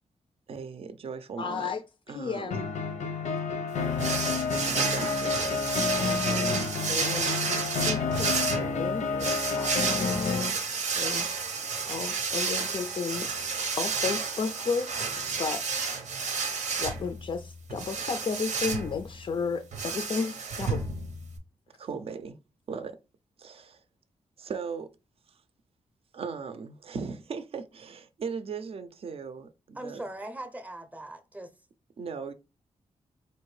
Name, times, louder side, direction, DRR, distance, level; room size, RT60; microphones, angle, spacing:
voice 1, 0.5-1.7 2.1-2.6 4.6-5.6 6.0-6.7 21.8-22.4 22.7-23.0 23.4-23.8 24.4-24.9 25.3-25.4 26.1-30.0 32.0-32.3, right 5 dB, 55° right, 0.5 m, -38 dB
voice 2, 1.4-2.7 6.9-10.5 10.9-11.3 11.9-13.4 13.8-15.1 15.4-15.7 16.8-20.8, left 5 dB, 45° left, 0.3 m, -33 dB
sound 1, 2.5-10.5, left 5 dB, 90° left, 0.6 m, -30 dB
sound 2, 4.0-21.4, right 5 dB, 85° right, 0.7 m, -31 dB
voice 3, 29.7-31.5, right 1 dB, 10° right, 0.6 m, -40 dB
4.3 x 2.6 x 3.1 m
cardioid pair, 90°, 12 cm